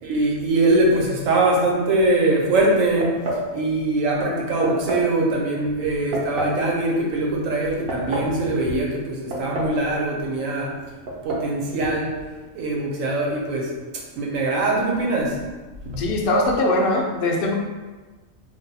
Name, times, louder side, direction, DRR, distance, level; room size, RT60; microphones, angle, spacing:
voice 1, 0.0-3.2 3.5-10.8 11.2-12.1 12.5-13.7 14.2-15.4 15.9-16.0, right 2 dB, 80° right, -2 dB, 1.1 m, -22 dB
sound 1, 3.0-3.5 4.6-5.1 6.1-6.6 7.6-8.4 9.3-9.8 10.1-10.2 11.1-11.5, right 1 dB, 60° right, 0.7 m, -28 dB
voice 2, 16.0-17.5, left 1 dB, 65° left, 0 dB, 0.6 m, -21 dB
2.6 x 2.2 x 4.0 m, 1.3 s
omnidirectional pair, 1.4 m